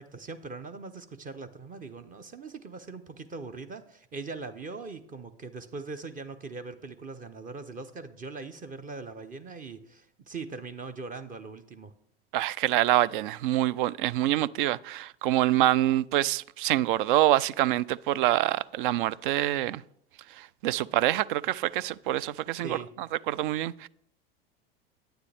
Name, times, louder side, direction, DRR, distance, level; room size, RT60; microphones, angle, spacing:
voice 1, 0.0-11.9 22.6-22.9, right 4 dB, 30° right, 0.8 m, -41 dB
voice 2, 12.3-19.8 20.6-22.8 23.3-23.9, right 14 dB, 60° right, 0.4 m, -26 dB
9.7 x 8.8 x 3.4 m
hypercardioid pair, 85°, 30 cm